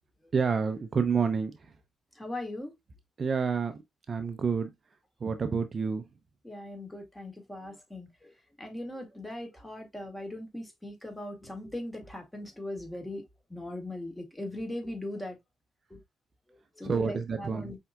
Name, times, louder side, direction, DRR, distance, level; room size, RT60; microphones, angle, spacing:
voice 1, 0.3-1.7 3.2-3.8 4.1-4.7 5.2-6.0 16.8-17.7, right 5 dB, 40° right, 0.6 m, -29 dB
voice 2, 2.2-2.7 6.4-8.3 8.6-13.2 13.5-15.4 15.9-16.0 16.8-17.8, left 1 dB, 10° left, 1.9 m, -39 dB
5.6 x 3.6 x 2.3 m
cardioid pair, 90°, 0 cm